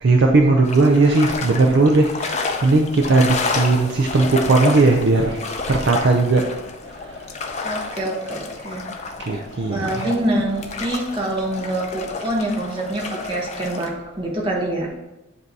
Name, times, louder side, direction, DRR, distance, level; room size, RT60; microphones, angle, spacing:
voice 1, 0.0-6.5 7.0-7.1 9.2-10.1, right 3 dB, 50° right, 2 dB, 0.4 m, -17 dB
sound 1, 0.6-13.9, left 4 dB, 30° left, 0.5 m, -30 dB
voice 2, 7.6-8.9 9.3-9.4 9.7-14.9, right 1 dB, 25° right, -2 dB, 1.0 m, -25 dB
7.7 x 2.7 x 4.6 m, 0.96 s
head